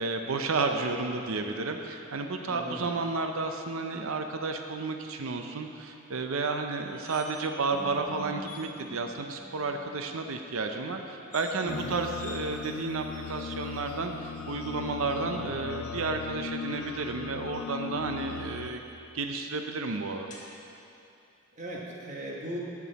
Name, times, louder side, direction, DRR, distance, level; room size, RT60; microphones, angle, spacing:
voice 1, 0.0-18.8 19.1-20.3, right 3 dB, 70° right, 5 dB, 0.6 m, -32 dB
voice 2, 2.5-2.9 11.6-12.0 21.5-22.6, equal, 35° right, -3 dB, 1.2 m, -38 dB
sound 1, 6.7-7.6 7.9-8.0 8.4-8.7 11.2-11.6 12.2-12.4 13.1-13.7 14.6-15.5 17.3-19.0 20.3-20.5, left 2 dB, 35° left, 1.3 m, -50 dB
sound 2, 7.7-10.5, left 1 dB, 10° left, 0.4 m, -46 dB
sound 3, 11.7-18.7, left 7 dB, 80° left, 0.5 m, -39 dB
13.5 x 6.0 x 4.1 m, 2.7 s
head